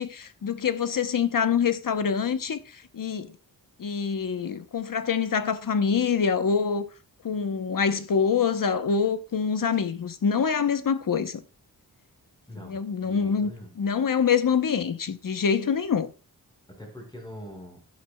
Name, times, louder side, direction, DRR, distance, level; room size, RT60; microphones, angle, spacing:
voice 1, 0.0-2.6 2.9-3.3 3.8-6.9 7.2-11.4 12.6-13.5 13.8-16.1, left 6 dB, 60° left, 0.8 m, -25 dB
voice 2, 12.5-13.7 16.7-17.8, equal, 10° left, 4.7 m, -43 dB
11.0 x 10.5 x 2.2 m
wide cardioid pair, 110°, 38 cm